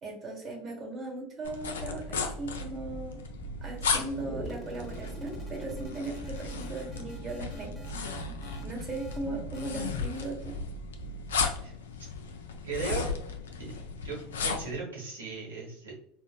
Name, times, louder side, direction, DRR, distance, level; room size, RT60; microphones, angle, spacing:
voice 1, 0.0-3.2 3.6-7.9 8.6-10.5, right 2 dB, 35° right, 1 dB, 1.0 m, -38 dB
sound 1, 1.4-14.8, left 5 dB, 80° left, 0.3 m, -36 dB
sound 2, 1.8-11.4, right 6 dB, 65° right, 1.2 m, -44 dB
sound 3, 4.2-10.0, equal, ahead, 0.7 m, -45 dB
voice 2, 11.6-12.1 12.6-13.1 13.6-13.8 14.0-15.9, right 5 dB, 85° right, -4 dB, 0.9 m, -37 dB
3.3 x 2.1 x 2.3 m, 0.68 s
hypercardioid pair, 80°, 0 cm